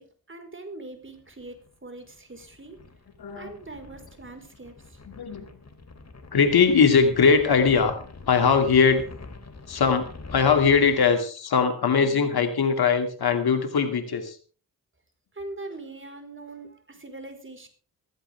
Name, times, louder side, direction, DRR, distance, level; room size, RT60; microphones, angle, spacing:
voice 1, 0.0-2.8 3.3-5.0 15.3-17.7, right 2 dB, 35° right, 6 dB, 4.6 m, -42 dB
sound 1, 1.1-11.1, left 3 dB, 45° left, 3.4 m, -45 dB
voice 2, 3.2-3.5 5.2-5.5 6.3-8.0 8.3-9.1 9.7-14.4, left 5 dB, 80° left, 7 dB, 2.6 m, -21 dB
16.0 x 15.5 x 3.5 m, 0.40 s
cardioid pair, 60°, 37 cm